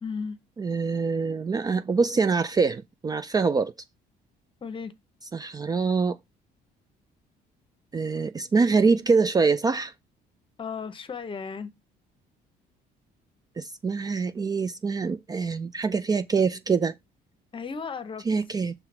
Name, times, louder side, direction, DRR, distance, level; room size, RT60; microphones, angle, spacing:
voice 1, 0.0-0.4 4.6-4.9 10.6-11.7 17.5-18.3, left 5 dB, 30° left, 0.9 m, -34 dB
voice 2, 0.6-3.7 5.3-6.2 7.9-9.9 13.6-16.9 18.3-18.7, right 4 dB, 25° right, 0.4 m, -24 dB
5.8 x 3.3 x 5.8 m
cardioid pair, 110°, 17 cm